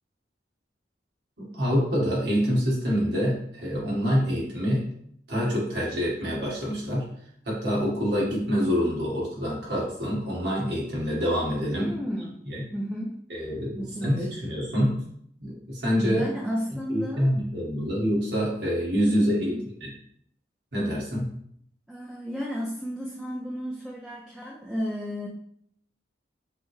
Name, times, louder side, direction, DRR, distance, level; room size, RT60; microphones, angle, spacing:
voice 1, 1.4-4.8 5.3-7.1 7.4-11.9 12.5-12.6 13.3-15.0 15.4-16.3 16.9-19.5 19.8-19.9 20.7-21.3, equal, 70° right, -4 dB, 1.4 m, -26 dB
voice 2, 11.7-12.4 12.7-13.2 13.7-14.3 16.0-17.3 19.0-19.6 21.9-25.3, equal, ahead, -3 dB, 0.3 m, -33 dB
5.4 x 2.0 x 3.1 m, 0.67 s
head